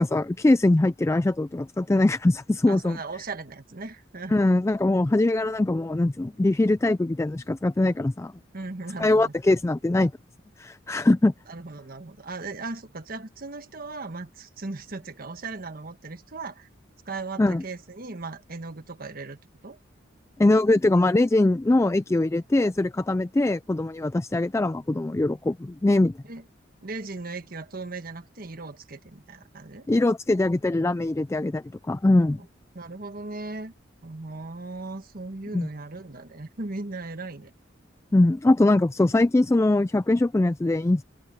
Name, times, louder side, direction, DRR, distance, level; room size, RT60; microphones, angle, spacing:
voice 1, 0.0-3.0 4.3-8.3 9.0-10.1 10.6-11.3 17.4-17.6 20.4-26.1 29.9-32.4 35.5-35.7 38.1-41.0, left 2 dB, 15° left, 0.3 m, -22 dB
voice 2, 2.7-4.4 8.5-9.3 11.5-16.7 17.0-19.4 19.6-19.8 26.3-26.4 26.8-29.9 32.7-33.7 34.0-37.5, right 3 dB, 50° right, 1.4 m, -37 dB
open air
head